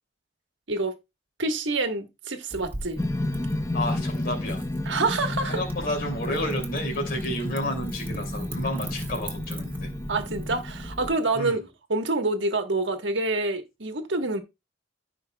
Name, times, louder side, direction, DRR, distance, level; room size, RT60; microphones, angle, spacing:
voice 1, 1.4-3.0 4.8-5.6 10.1-11.6 11.9-14.4, right 2 dB, 70° right, 1.3 m, -27 dB
Wind / Fire, 2.5-11.1, right 1 dB, 15° right, 1.8 m, -39 dB
sound 1, 3.0-11.4, left 1 dB, 15° left, 0.5 m, -32 dB
voice 2, 3.7-9.9 11.3-11.6, left 1 dB, 50° left, 2.6 m, -31 dB
15.0 x 5.1 x 2.2 m
head